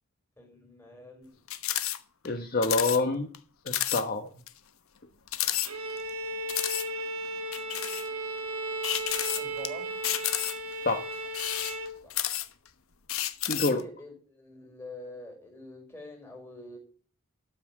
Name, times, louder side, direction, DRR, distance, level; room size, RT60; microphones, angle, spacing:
voice 1, 0.4-1.4 9.4-9.9 12.0-12.2 13.5-16.8, left 1 dB, 10° left, 1 dB, 4.8 m, -45 dB
sound 1, 1.5-2.0 2.2-2.3 2.6-3.0 3.3-3.4 3.7-4.0 4.5-4.6 5.3-6.1 6.5-6.9 7.5-8.1 8.8-9.7 10.0-10.7 11.3-12.7 13.1-13.8, left 13 dB, 65° left, 1.0 m, -31 dB
voice 2, 2.2-3.3 3.7-4.3 10.8-11.0 13.5-13.8, left 3 dB, 40° left, 5 dB, 1.1 m, -27 dB
Bowed string instrument, 5.6-12.0, right 1 dB, 75° right, 1.8 m, -35 dB
12.5 x 6.0 x 7.4 m, 0.40 s
head